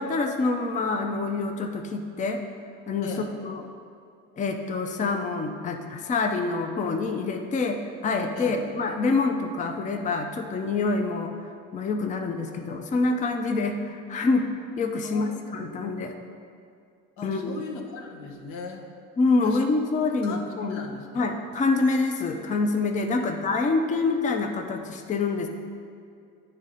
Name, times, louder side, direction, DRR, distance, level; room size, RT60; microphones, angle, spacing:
voice 1, 0.0-2.4 2.9-3.1 3.4-3.7 4.4-11.3 11.7-14.5 14.8-16.1 17.2-17.6 19.2-20.8 21.1-25.5, left 3 dB, 25° left, 4 dB, 0.5 m, -26 dB
voice 2, 15.0-16.1 17.2-18.9 19.4-19.7 20.2-20.4 20.7-21.3 23.2-24.1, left 4 dB, 80° left, 0 dB, 0.9 m, -39 dB
8.8 x 3.2 x 3.8 m, 2.4 s
supercardioid pair, 85°, 30 cm